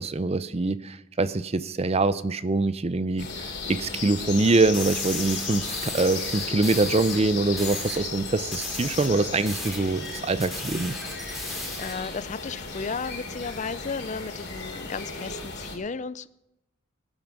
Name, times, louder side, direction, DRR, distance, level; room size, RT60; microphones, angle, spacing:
voice 1, 0.0-10.9, right 3 dB, 30° right, 0.5 m, -24 dB
sound 1, 3.2-15.8, left 4 dB, 55° left, 2.9 m, -35 dB
sound 2, 4.7-7.2 7.6-8.0 8.5-12.2, left 1 dB, ahead, 3.0 m, -37 dB
voice 2, 11.5-16.3, left 5 dB, 35° left, 0.5 m, -34 dB
20.0 x 8.9 x 6.1 m
head